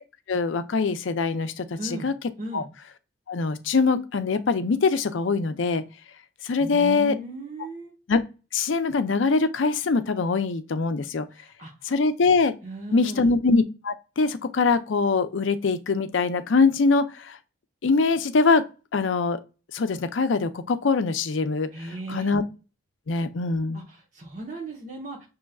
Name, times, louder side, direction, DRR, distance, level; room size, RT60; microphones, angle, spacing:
voice 1, 0.3-1.6 2.0-2.1 2.5-2.6 3.3-5.8 6.4-7.1 8.1-8.2 8.5-11.3 11.9-12.5 12.9-17.4 17.8-18.6 18.9-19.4 19.7-21.7 22.1-22.4 23.1-23.8, left 4 dB, 80° left, 0.5 m, -23 dB
voice 2, 1.8-2.1 2.4-2.7 6.6-7.9 11.3-11.9 12.6-13.3 21.7-22.3 23.7-25.3, right 2 dB, 40° right, 1.0 m, -36 dB
6.4 x 3.0 x 2.3 m
head